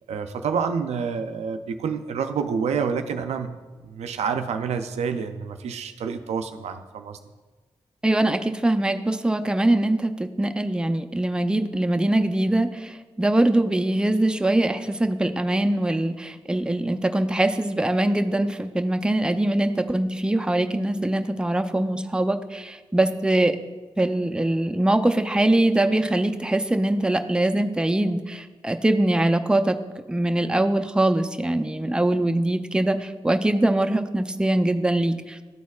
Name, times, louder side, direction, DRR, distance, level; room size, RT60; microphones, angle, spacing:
voice 1, 0.1-3.6 3.8-7.2, right 6 dB, 80° right, 7 dB, 0.4 m, -28 dB
voice 2, 8.0-23.6 24.0-29.8 30.1-35.4, right 1 dB, 10° right, 6 dB, 0.5 m, -22 dB
12.0 x 4.1 x 2.3 m, 1.3 s
supercardioid pair, 45°, 11 cm